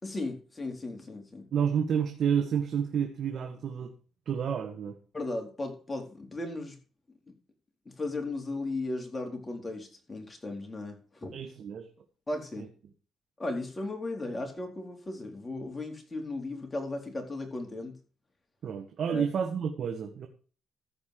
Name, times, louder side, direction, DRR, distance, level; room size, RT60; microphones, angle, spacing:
voice 1, 0.0-1.5 5.1-6.8 7.9-11.3 12.3-12.7 13.4-17.9 19.1-19.2, left 2 dB, 20° left, 2 dB, 4.0 m, -36 dB
voice 2, 1.5-3.9 4.3-5.0 11.3-11.9 12.6-12.7 18.6-20.3, right 7 dB, 60° right, 5 dB, 1.5 m, -30 dB
14.5 x 5.4 x 6.7 m, 0.38 s
cardioid pair, 90°, 0 cm